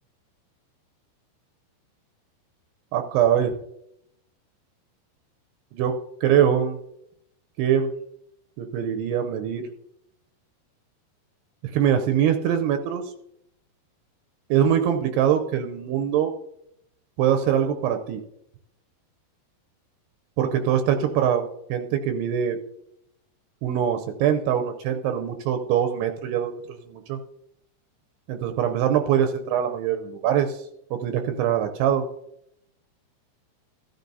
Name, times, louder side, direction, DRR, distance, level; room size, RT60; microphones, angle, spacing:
voice 1, 2.9-3.5 5.7-6.8 7.6-7.9 8.6-9.6 11.6-13.0 14.5-16.3 17.2-18.2 20.4-22.6 23.6-27.2 28.3-30.6 30.9-32.1, right 9 dB, 80° right, 6 dB, 2.7 m, -23 dB
14.0 x 13.0 x 2.7 m, 0.77 s
omnidirectional pair, 4.8 m